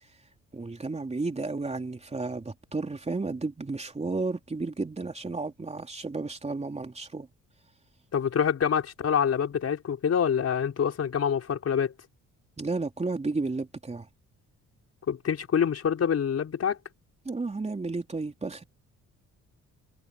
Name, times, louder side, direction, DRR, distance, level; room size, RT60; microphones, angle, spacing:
voice 1, 0.5-7.3 12.6-14.1 17.3-18.6, right 3 dB, 20° right, 3.5 m, -32 dB
voice 2, 8.1-11.9 15.1-16.8, left 7 dB, 55° left, 5.1 m, -26 dB
cardioid pair, 90°, 30 cm